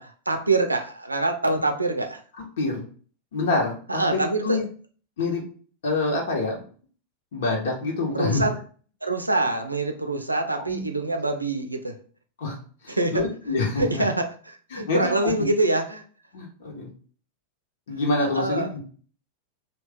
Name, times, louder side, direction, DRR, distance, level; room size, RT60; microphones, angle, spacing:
voice 1, 0.0-2.2 3.9-4.6 8.1-8.6 9.0-12.0 12.9-13.3 13.8-16.0 18.2-18.7, right 2 dB, 85° right, 5 dB, 0.5 m, -25 dB
voice 2, 3.3-4.6 5.2-5.4 5.8-6.6 7.3-8.4 10.7-10.8 12.4-12.6 12.8-14.0 14.7-15.1 16.3-16.9 17.9-18.8, left 3 dB, 60° left, 0 dB, 1.1 m, -26 dB
3.2 x 2.4 x 3.5 m, 0.42 s
figure-of-eight pair, 90°, 0 cm